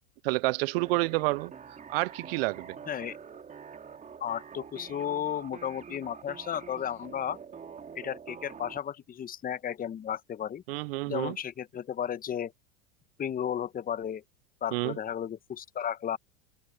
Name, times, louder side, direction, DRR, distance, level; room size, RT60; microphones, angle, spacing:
voice 1, 0.2-1.5 1.9-2.8 10.7-11.4 14.7-15.0, right 23 dB, 65° right, 0.5 m, -29 dB
sound 1, 0.8-8.8, right 6 dB, 25° right, 2.9 m, -46 dB
voice 2, 2.9-3.2 4.2-7.4 7.9-10.6 11.1-12.5 13.2-14.2 14.6-16.2, left 9 dB, 25° left, 1.2 m, -34 dB
hypercardioid pair, 100°, 33 cm